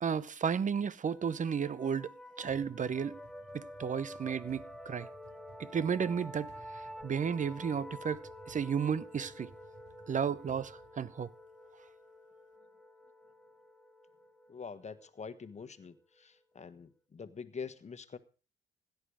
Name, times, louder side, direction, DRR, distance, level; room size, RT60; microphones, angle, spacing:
voice 1, 0.0-2.1 2.4-3.2 3.5-5.1 5.6-6.5 7.0-8.2 8.5-9.5 10.1-11.3, right 7 dB, 40° right, 0.8 m, -33 dB
sound 1, 1.1-16.4, left 1 dB, ahead, 1.3 m, -50 dB
sound 2, 2.5-11.7, right 4 dB, 55° right, 4.7 m, -59 dB
voice 2, 14.5-18.2, left 5 dB, 35° left, 1.4 m, -45 dB
17.0 x 10.5 x 4.9 m
cardioid pair, 90°, 20 cm